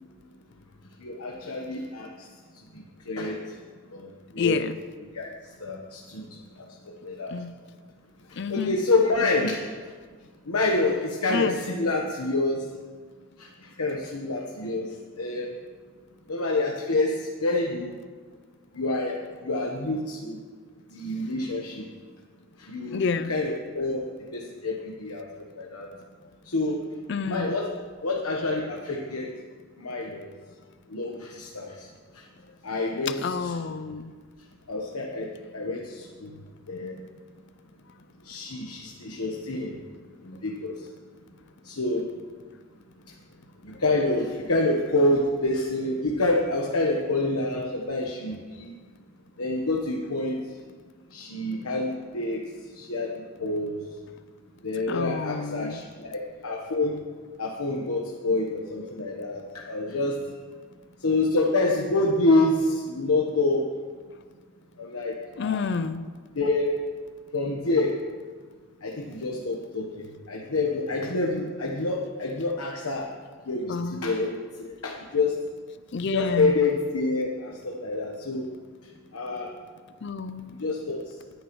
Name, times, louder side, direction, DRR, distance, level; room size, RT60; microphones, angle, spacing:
voice 1, 1.0-2.1 3.1-3.4 3.9-4.6 5.1-5.3 5.6-6.2 7.0-7.3 8.5-9.6 10.5-12.6 13.4-13.5 13.8-14.9 15.2-15.5 16.3-17.9 18.7-19.1 19.4-20.4 20.9-21.8 22.6-24.0 24.3-25.2 25.6-25.9 26.5-26.8 27.3-27.7 28.0-29.3 29.8-30.3 30.9-31.9 32.6-33.8 34.7-35.3 35.5-36.3 36.7-37.0 38.2-39.8 40.2-40.7 41.6-42.0 43.6-48.7 49.4-50.4 51.1-52.4 52.8-53.8 54.6-56.9 57.4-60.2 61.0-63.6 64.8-65.6 66.4-66.7 67.3-68.0 68.8-73.1 73.5-75.4 76.0-78.4 79.1-79.5 80.6-81.0, left 2 dB, 90° left, -1 dB, 1.1 m, -27 dB
voice 2, 4.4-4.8 7.3-7.6 8.4-8.7 9.4-9.6 11.3-11.6 22.9-23.3 27.1-27.6 33.1-34.1 54.9-55.8 65.4-66.1 73.7-74.1 75.9-76.6 80.0-80.5, left 5 dB, 55° left, 12 dB, 0.4 m, -29 dB
19.0 x 10.0 x 3.1 m, 1.5 s
head